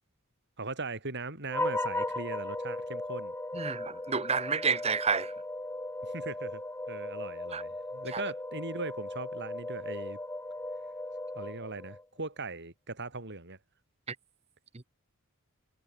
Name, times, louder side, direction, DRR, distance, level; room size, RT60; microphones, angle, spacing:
voice 1, 0.6-3.3 6.0-6.6 6.9-10.2 11.3-13.6, right 3 dB, 55° right, 7.5 m, -39 dB
sound 1, 1.5-12.0, left 1 dB, 10° left, 3.0 m, -37 dB
voice 2, 3.5-5.3 7.5-7.6 8.1-8.2, right 5 dB, 30° right, 0.9 m, -29 dB
head